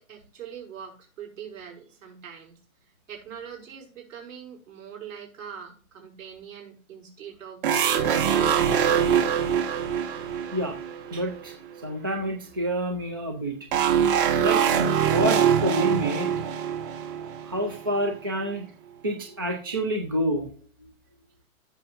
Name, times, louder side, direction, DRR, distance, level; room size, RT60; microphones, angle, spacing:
voice 1, 0.0-2.5 3.1-8.3, right 8 dB, 60° right, 0 dB, 5.5 m, -42 dB
sound 1, 7.6-11.5 13.7-18.1, right 8 dB, 35° right, 1.4 m, -23 dB
voice 2, 11.1-11.5 11.8-13.6 14.4-14.6 15.0-16.3 17.4-18.7 19.0-20.5, equal, 20° right, 3 dB, 0.3 m, -28 dB
16.0 x 6.5 x 2.5 m, 0.38 s
hypercardioid pair, 155°, 43 cm